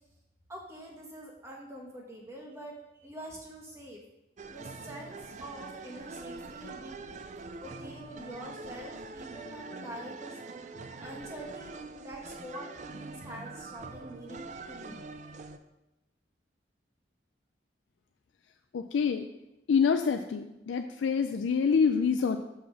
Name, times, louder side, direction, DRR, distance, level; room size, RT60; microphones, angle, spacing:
voice 1, 0.5-4.0 4.5-7.2 7.6-10.4 11.0-15.3, right 1 dB, 15° right, -1 dB, 1.2 m, -45 dB
sound 1, 4.4-15.6, right 3 dB, 40° right, 0.4 m, -44 dB
voice 2, 18.7-19.3 19.7-22.4, left 6 dB, 90° left, 7 dB, 0.4 m, -26 dB
5.5 x 4.7 x 6.3 m, 0.95 s
head